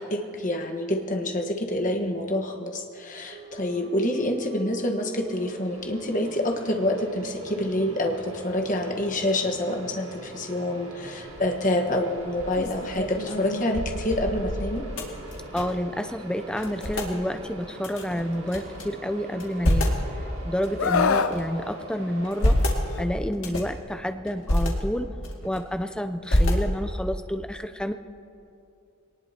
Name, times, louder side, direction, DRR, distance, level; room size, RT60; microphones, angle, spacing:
voice 1, 0.0-14.9, left 1 dB, 35° left, 3 dB, 1.3 m, -27 dB
sound 1, 3.3-22.8, right 1 dB, 85° right, 4.8 m, -43 dB
sound 2, 11.3-11.6 12.1-15.9 16.2-16.3 16.5-17.1 17.8-18.8 19.3-20.0 20.6-21.6 22.1-22.8 23.3-23.8 24.3-24.7 25.2-25.8 26.3-27.0, left 1 dB, 65° left, 2.1 m, -27 dB
voice 2, 15.5-19.9 20.4-22.6 23.0-25.1 25.4-27.9, equal, 5° left, 8 dB, 0.5 m, -29 dB
Screaming, 20.8-21.4 22.8-23.1, left 5 dB, 80° left, 0.6 m, -23 dB
23.0 x 19.0 x 2.8 m, 2.6 s
head